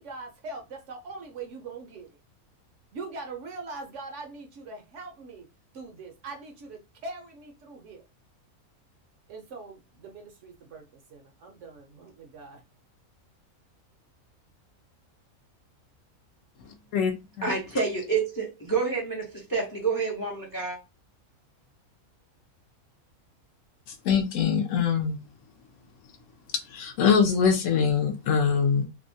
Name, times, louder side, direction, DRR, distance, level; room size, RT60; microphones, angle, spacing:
voice 1, 0.0-2.2 2.9-5.5 5.7-8.0 9.3-10.8 11.1-12.6, right 3 dB, 65° right, 0.8 m, -42 dB
voice 2, 17.4-20.8, right 4 dB, 30° left, 0.4 m, -28 dB
voice 3, 23.9-25.2 26.7-28.9, left 6 dB, 70° left, 0.9 m, -23 dB
2.7 x 2.1 x 2.6 m
omnidirectional pair, 1.5 m